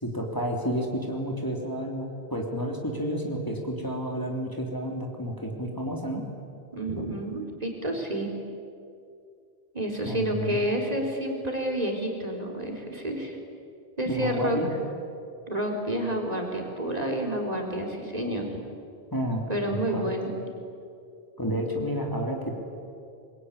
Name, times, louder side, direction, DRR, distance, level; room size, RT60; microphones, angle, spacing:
voice 1, 0.0-6.2 10.0-10.6 14.0-14.7 19.1-20.1 21.4-22.6, equal, 20° left, 1 dB, 3.2 m, -30 dB
voice 2, 6.7-8.3 9.7-13.4 14.0-14.6 15.5-18.5 19.5-20.3, right 1 dB, 40° right, 1 dB, 3.9 m, -29 dB
25.0 x 22.0 x 9.9 m, 2.5 s
omnidirectional pair, 1.0 m